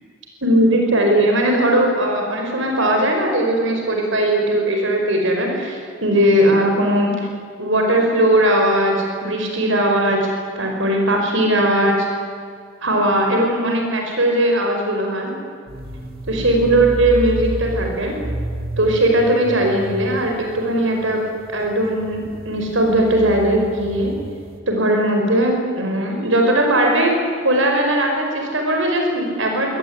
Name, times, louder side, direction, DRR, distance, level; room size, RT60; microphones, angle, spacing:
voice 1, 0.4-7.1 7.6-12.1 12.8-15.3 16.3-18.1 18.8-21.2 21.5-24.1 24.7-29.8, right 1 dB, 65° right, 2 dB, 5.1 m, -18 dB
sound 1, 15.7-24.6, equal, 45° right, 2.0 m, -31 dB
25.5 x 17.5 x 9.7 m, 2.2 s
head